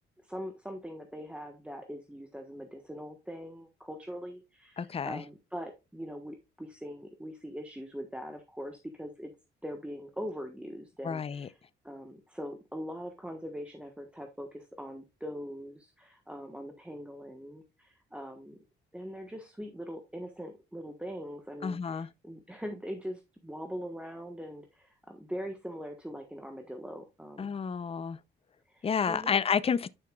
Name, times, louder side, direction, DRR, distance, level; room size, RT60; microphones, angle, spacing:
voice 1, 0.2-9.3 9.6-11.6 11.8-18.5 18.9-27.6 28.7-29.4, equal, 5° right, 1.3 m, -42 dB
voice 2, 4.8-5.2 11.0-11.5 21.6-22.1 27.4-28.2 28.8-29.9, left 6 dB, 30° left, 0.6 m, -30 dB
10.5 x 5.7 x 2.4 m
cardioid pair, 90°, 20 cm